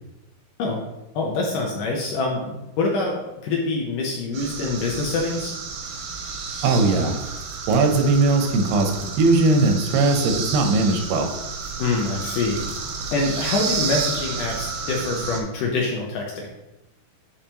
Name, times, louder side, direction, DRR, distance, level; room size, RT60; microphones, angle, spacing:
voice 1, 1.2-3.2 3.4-5.5 11.8-12.6 13.1-16.5, left 3 dB, 75° left, -1 dB, 2.0 m, -25 dB
sound 1, 4.3-15.4, right 5 dB, 70° right, 2.3 m, -31 dB
voice 2, 6.6-7.2 7.7-11.3, right 3 dB, 85° right, 4 dB, 2.9 m, -19 dB
8.7 x 5.0 x 2.9 m, 0.99 s
omnidirectional pair, 4.6 m